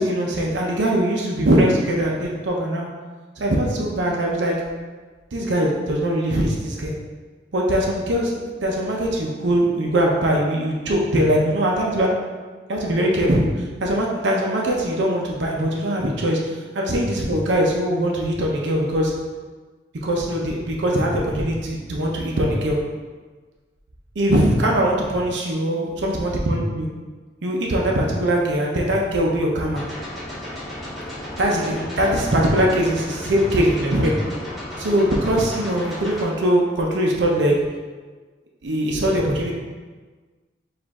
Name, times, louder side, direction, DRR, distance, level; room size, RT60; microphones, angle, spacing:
voice 1, 0.0-2.9 3.4-4.5 5.3-6.9 7.5-8.3 8.6-12.1 12.7-13.4 13.8-16.4 16.7-19.1 20.0-22.8 24.2-26.9 27.4-29.8 31.4-34.2 34.8-37.6 38.6-39.5, right 1 dB, 75° right, -1 dB, 0.6 m, -21 dB
sound 1, 29.8-36.2, left 1 dB, ahead, 0.9 m, -34 dB
5.0 x 2.5 x 3.5 m, 1.4 s
head